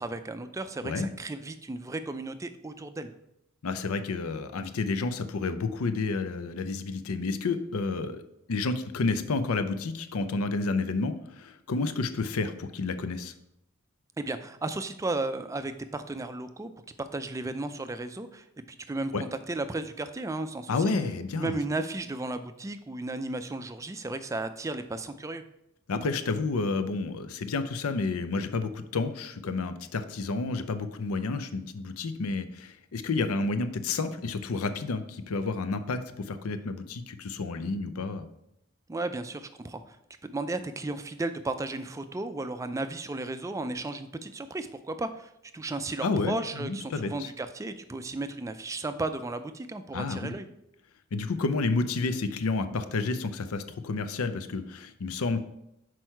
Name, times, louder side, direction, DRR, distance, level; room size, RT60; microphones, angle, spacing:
voice 1, 0.0-3.1 14.2-16.7 17.0-20.9 21.4-25.4 38.9-40.0 40.2-50.5, right 2 dB, 15° right, 10 dB, 0.3 m, -34 dB
voice 2, 3.6-8.2 8.5-13.3 19.1-19.2 20.7-21.6 25.9-38.3 46.0-47.3 49.9-50.3 51.1-55.4, left 3 dB, 80° left, 10 dB, 0.5 m, -30 dB
6.2 x 4.6 x 4.4 m, 0.82 s
head